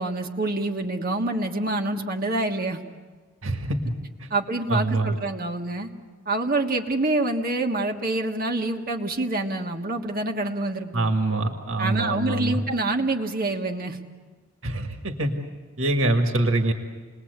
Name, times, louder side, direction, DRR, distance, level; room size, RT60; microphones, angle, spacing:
voice 1, 0.0-2.8 4.3-5.9 6.2-11.1 11.8-14.0, right 2 dB, 40° right, 3 dB, 1.6 m, -26 dB
voice 2, 3.4-3.9 4.2-4.3 4.7-5.1 10.9-12.6 14.6-15.3 15.8-16.7, right 2 dB, 60° right, 4 dB, 1.9 m, -24 dB
29.0 x 21.0 x 8.2 m, 1.4 s
head